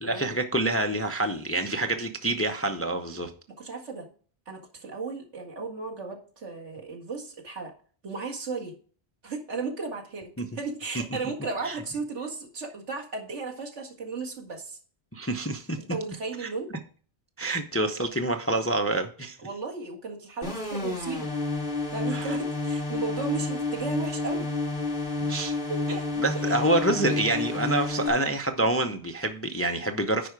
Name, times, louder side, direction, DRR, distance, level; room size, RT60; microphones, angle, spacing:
voice 1, 0.0-3.3 10.4-10.5 11.6-11.8 15.1-15.8 16.4-16.5 17.4-19.4 22.1-22.4 25.3-25.5 26.2-30.3, right 2 dB, 15° left, 6 dB, 0.5 m, -27 dB
voice 2, 3.6-4.1 4.5-7.7 8.0-8.7 9.2-14.8 15.8-16.7 19.4-21.3 21.9-24.5 25.7-26.0 26.3-26.7, right 4 dB, 80° right, -1 dB, 2.2 m, -35 dB
sound 1, 20.4-28.1, left 3 dB, 45° left, 2.1 m, -30 dB
10.0 x 4.8 x 4.7 m, 0.42 s
omnidirectional pair, 1.2 m